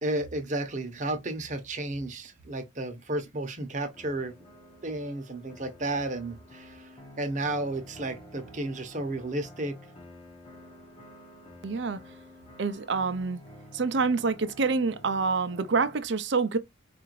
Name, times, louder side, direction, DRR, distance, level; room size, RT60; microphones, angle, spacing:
voice 1, 0.0-4.3 4.8-6.9 7.2-9.8, right 2 dB, 40° right, 0.8 m, -32 dB
sound 1, 3.9-16.0, left 1 dB, 25° left, 0.9 m, -50 dB
voice 2, 11.6-12.0 12.6-13.4 13.7-16.6, right 4 dB, 60° right, 0.5 m, -27 dB
4.7 x 2.5 x 3.1 m
head